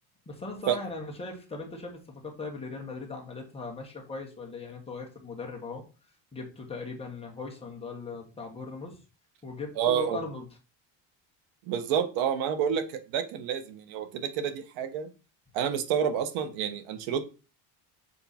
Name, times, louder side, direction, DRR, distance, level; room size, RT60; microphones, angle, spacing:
voice 1, 0.2-5.8 6.3-9.0 9.4-10.5, left 3 dB, 15° left, 0 dB, 1.6 m, -39 dB
voice 2, 9.8-10.2 11.7-15.1 15.5-17.2, right 8 dB, 90° right, 9 dB, 1.3 m, -29 dB
6.9 x 4.5 x 4.3 m, 0.32 s
cardioid pair, 150°, 45 cm